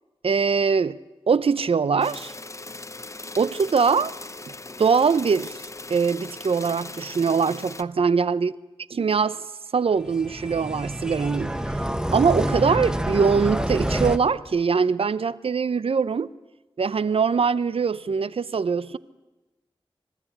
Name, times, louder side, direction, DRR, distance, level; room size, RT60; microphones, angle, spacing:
voice 1, 0.2-1.0 1.3-2.3 3.4-4.1 4.8-5.5 5.9-8.5 8.9-9.4 9.7-11.6 12.1-16.3 16.8-19.0, right 5 dB, 75° right, 0.7 m, -22 dB
sound 1, 2.0-7.8, left 2 dB, 30° left, 0.8 m, -39 dB
sound 2, 10.0-14.2, right 1 dB, 5° right, 1.3 m, -27 dB
26.5 x 13.5 x 10.0 m
wide cardioid pair, 55°, 10 cm